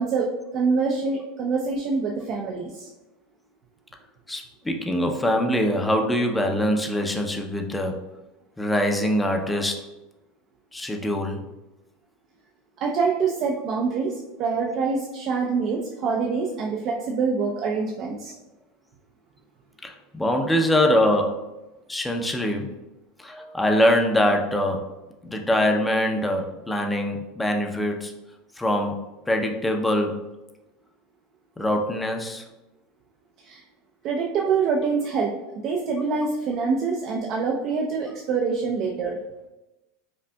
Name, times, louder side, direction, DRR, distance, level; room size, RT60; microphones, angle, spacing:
voice 1, 0.0-2.9 12.8-18.3 33.4-33.6 34.0-39.2, right 5 dB, 50° right, -1 dB, 0.5 m, -25 dB
voice 2, 4.3-8.0 8.6-9.9 10.7-11.4 19.8-21.5 21.9-22.7 23.2-24.9 25.2-28.1 28.6-29.0 29.3-30.2 31.6-32.4, left 1 dB, 10° left, 3 dB, 0.5 m, -23 dB
5.0 x 2.5 x 2.2 m, 1.0 s
hypercardioid pair, 95°, 0 cm